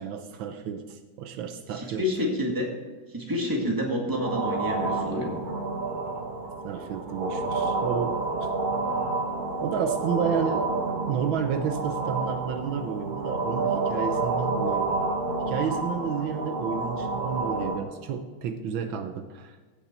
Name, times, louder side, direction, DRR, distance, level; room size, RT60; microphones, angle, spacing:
voice 1, 0.0-2.1 6.6-8.2 9.6-10.7 11.1-14.9 15.5-19.6, right 7 dB, 75° right, 8 dB, 1.5 m, -31 dB
voice 2, 1.7-2.7 3.1-5.4, left 1 dB, 10° right, -1 dB, 1.8 m, -28 dB
sound 1, 4.2-17.8, right 3 dB, 30° right, 1.1 m, -29 dB
15.5 x 7.0 x 4.4 m, 1.4 s
omnidirectional pair, 2.2 m